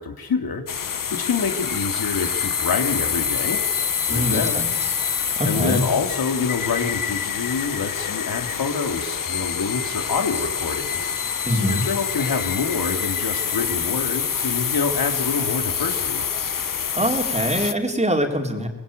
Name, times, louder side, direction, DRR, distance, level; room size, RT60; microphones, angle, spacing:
voice 1, 0.0-3.6 4.0-4.6 5.4-16.2, left 5 dB, 90° left, 5 dB, 2.8 m, -27 dB
sound 1, 0.7-17.7, left 7 dB, 65° left, 1.2 m, -26 dB
voice 2, 4.1-4.7 5.4-5.8 11.5-11.8 17.0-18.7, right 1 dB, 20° right, 3 dB, 4.1 m, -23 dB
25.5 x 20.5 x 9.2 m, 1.3 s
wide cardioid pair, 85°, 35 cm